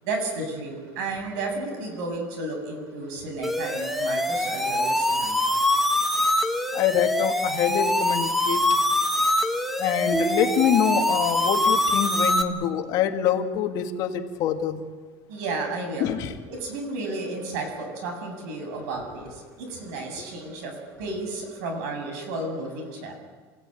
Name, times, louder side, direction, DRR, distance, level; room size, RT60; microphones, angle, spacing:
voice 1, 0.0-5.4 15.3-16.1 16.5-23.1, right 2 dB, 80° right, 4 dB, 7.9 m, -32 dB
sound 1, 3.4-12.4, left 1 dB, ahead, 1.4 m, -24 dB
voice 2, 6.7-8.6 9.8-14.8 16.0-16.3, left 9 dB, 50° left, 5 dB, 2.0 m, -25 dB
sound 2, 10.1-12.3, right 6 dB, 20° right, 1.4 m, -33 dB
28.5 x 16.5 x 9.1 m, 1.5 s
cardioid pair, 165°, 9 cm